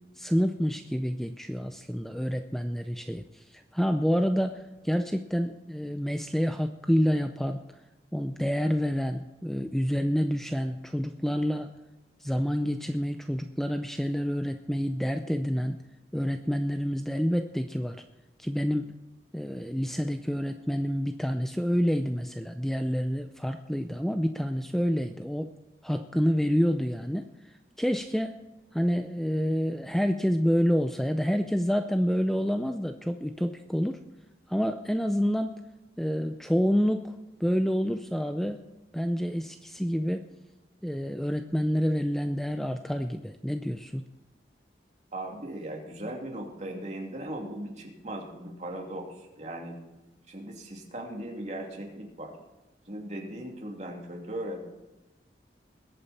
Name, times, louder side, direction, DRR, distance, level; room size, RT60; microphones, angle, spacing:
voice 1, 0.2-7.6 8.1-11.7 12.2-15.8 16.1-18.0 18.4-19.0 19.3-25.5 25.8-28.4 28.7-34.0 34.5-35.6 36.0-37.1 37.4-38.6 38.9-40.3 40.8-44.0, equal, ahead, 7 dB, 0.5 m, -28 dB
voice 2, 45.1-49.8 50.3-52.4 52.9-54.6, right 1 dB, 40° right, 0 dB, 2.7 m, -38 dB
21.0 x 8.7 x 4.3 m, 1.1 s
head